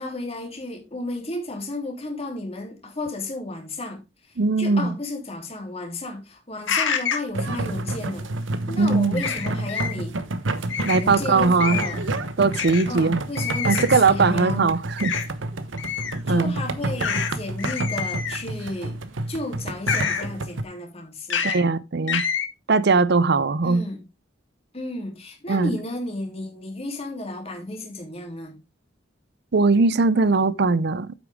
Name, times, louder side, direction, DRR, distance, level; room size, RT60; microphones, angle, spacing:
voice 1, 0.0-10.2 11.0-12.0 12.9-14.8 16.3-19.0 19.3-21.5 23.6-24.0 24.7-28.6, left 2 dB, 35° left, 3.1 m, -33 dB
voice 2, 4.4-4.9 8.8-9.2 10.8-11.8 12.4-13.2 13.7-15.1 16.3-16.5 21.4-22.2 22.7-23.8 25.5-25.7 29.5-31.1, right 4 dB, 60° right, 0.6 m, -20 dB
sound 1, 6.7-7.3 9.2-9.9 10.7-11.0 11.6-12.0 12.5-12.8 13.4-14.0 15.0-15.2 15.8-16.2 17.0-17.3 17.6-18.5 19.9-20.3 21.3-21.6 22.1-22.4, left 7 dB, 75° left, 1.8 m, -27 dB
sound 2, 7.3-20.6, right 2 dB, 90° right, 1.0 m, -29 dB
9.0 x 8.4 x 3.6 m
head